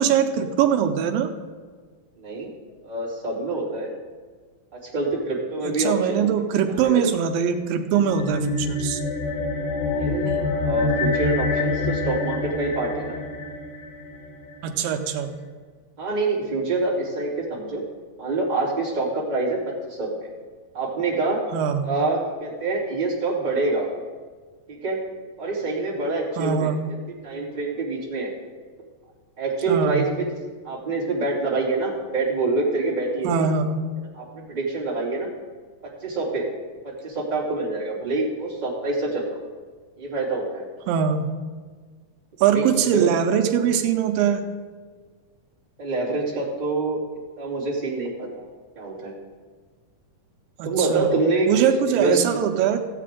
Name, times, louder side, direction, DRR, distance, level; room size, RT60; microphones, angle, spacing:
voice 1, 0.0-1.3 5.8-9.0 14.6-15.4 21.5-21.9 26.4-26.8 29.7-30.0 33.2-33.8 40.9-41.3 42.4-44.5 50.6-51.1 51.5-52.8, right 8 dB, 85° right, 6 dB, 2.3 m, -22 dB
voice 2, 2.2-2.5 2.8-3.9 4.7-6.3 6.7-7.1 9.9-13.2 16.0-17.8 18.2-20.3 20.7-21.4 21.8-23.9 24.7-25.0 25.4-26.7 27.2-28.3 29.4-30.3 30.6-33.3 34.1-35.3 35.8-36.4 36.8-39.2 40.0-40.6 42.5-43.1 45.8-47.0 47.4-48.4 48.7-49.1 50.6-51.5 51.9-52.4, right 3 dB, 15° right, -7 dB, 2.0 m, -26 dB
sound 1, 7.9-14.6, left 3 dB, 90° left, 4.1 m, -27 dB
15.0 x 8.4 x 3.7 m, 1.5 s
omnidirectional pair, 4.0 m